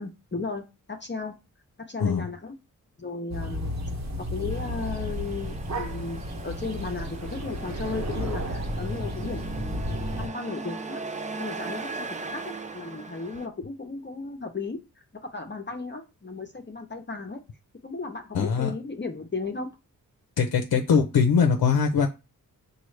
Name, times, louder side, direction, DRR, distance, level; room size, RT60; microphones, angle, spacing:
voice 1, 0.0-1.4 1.9-2.6 3.0-3.8 4.3-11.0 11.4-14.8 15.3-17.4 17.8-19.7, left 4 dB, 30° left, 0.8 m, -35 dB
sound 1, 3.3-10.3, equal, 50° right, 1.2 m, -32 dB
Truck, 4.5-13.5, right 3 dB, 20° right, 0.5 m, -39 dB
voice 2, 18.3-18.7 20.4-22.1, left 6 dB, 80° left, 0.7 m, -22 dB
5.9 x 2.4 x 3.2 m
wide cardioid pair, 80°, 36 cm